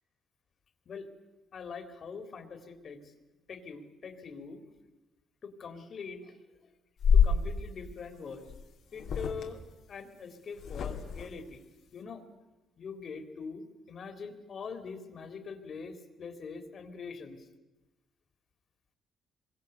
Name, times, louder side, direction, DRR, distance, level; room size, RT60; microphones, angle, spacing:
voice 1, 1.5-3.1 3.5-4.6 5.4-6.4 7.1-8.4 8.9-11.6 11.9-12.3 12.8-17.5, left 5 dB, 55° left, 9 dB, 3.5 m, -43 dB
sound 1, 7.0-7.4 8.5-8.6 9.0-9.4 10.6-11.3, left 6 dB, 70° left, 2.9 m, -26 dB
25.0 x 23.5 x 8.3 m, 1.1 s
cardioid pair, 90°, 0 cm